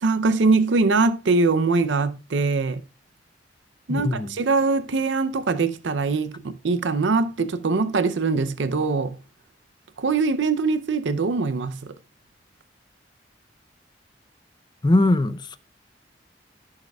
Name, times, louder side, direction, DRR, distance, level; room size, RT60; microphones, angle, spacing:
voice 1, 0.0-2.8 3.9-9.2 10.0-11.9, right 4 dB, 85° right, 0.6 m, -22 dB
voice 2, 3.9-4.3 14.8-15.6, left 2 dB, 25° left, 0.5 m, -21 dB
16.0 x 6.6 x 2.3 m
head